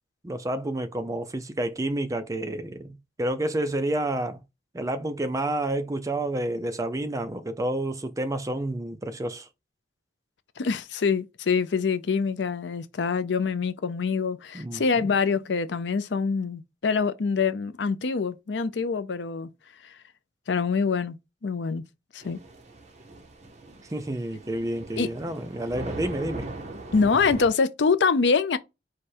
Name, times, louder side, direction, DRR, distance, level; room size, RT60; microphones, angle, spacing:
voice 1, 0.2-4.4 4.7-9.5 14.5-14.8 23.9-26.5, right 1 dB, 20° right, 0.5 m, -29 dB
voice 2, 10.6-19.5 19.8-20.0 20.5-21.9 22.1-22.4 25.0-25.1 26.9-28.6, left 5 dB, 85° left, 0.5 m, -25 dB
Thunder / Rain, 22.2-27.5, right 2 dB, 40° right, 0.9 m, -39 dB
4.8 x 2.2 x 4.2 m
head